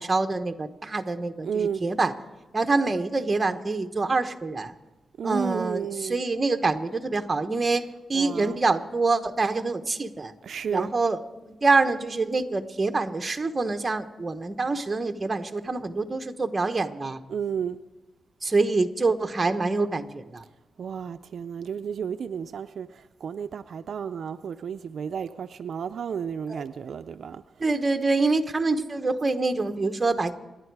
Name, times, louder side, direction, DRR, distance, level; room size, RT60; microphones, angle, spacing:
voice 1, 0.0-2.1 2.5-4.7 5.2-7.8 8.1-10.3 10.7-11.2 11.5-17.2 18.4-20.4 26.5-26.6 27.6-30.3, right 3 dB, 25° right, 1.0 m, -25 dB
voice 2, 1.4-1.8 5.2-6.2 8.1-8.6 10.4-10.9 17.3-17.8 20.8-27.4, right 7 dB, 70° right, 0.4 m, -32 dB
27.5 x 10.5 x 4.8 m
wide cardioid pair, 110°, 0 cm